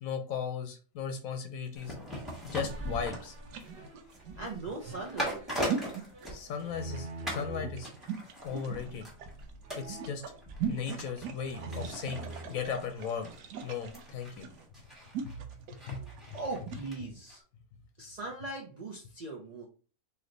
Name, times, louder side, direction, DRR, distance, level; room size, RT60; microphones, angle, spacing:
voice 1, 0.0-1.9 2.4-3.3 6.3-7.9 8.4-9.1 9.7-10.2 10.7-13.3 13.6-14.5 15.2-15.4 15.9-16.0, left 7 dB, 70° left, 6 dB, 0.9 m, -36 dB
sound 1, 1.7-6.9 7.3-7.5 7.8-17.0 17.3-17.4, equal, ahead, 1.2 m, -41 dB
sound 2, 2.1-16.9, right 8 dB, 85° right, 1.2 m, -41 dB
sound 3, 2.6-7.8 8.5-9.0 9.6-11.1 11.4-13.4, right 2 dB, 40° right, 1.2 m, -46 dB
voice 2, 4.4-5.4 16.0-17.4 18.0-19.7, right 2 dB, 65° right, -1 dB, 0.4 m, -40 dB
3.2 x 2.8 x 3.8 m, 0.39 s
omnidirectional pair, 1.7 m